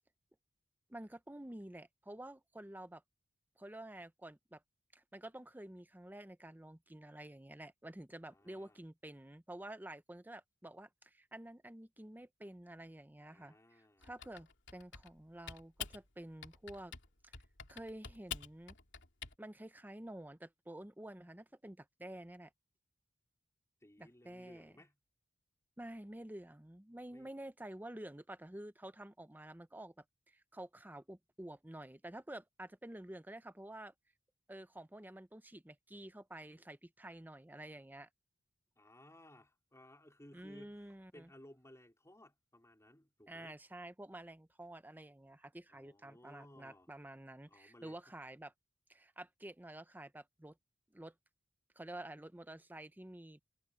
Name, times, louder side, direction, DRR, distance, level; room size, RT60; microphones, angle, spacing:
voice 1, 0.9-3.0 3.6-4.6 4.9-16.9 17.2-17.3 17.7-18.8 19.4-22.5 24.0-24.7 25.8-33.9 34.5-38.1 40.3-41.3 43.3-48.5 48.9-50.6 50.9-51.1 51.8-53.4, right 1 dB, 10° right, 0.7 m, -50 dB
voice 2, 8.3-8.8 13.3-14.1 23.8-25.0 27.1-27.3 38.8-43.6 45.7-46.9 47.5-48.0, left 1 dB, 15° left, 4.2 m, -60 dB
Typing, 14.0-15.2 15.5-16.0 16.4-17.1 17.3-19.3, left 7 dB, 65° left, 3.0 m, -47 dB
head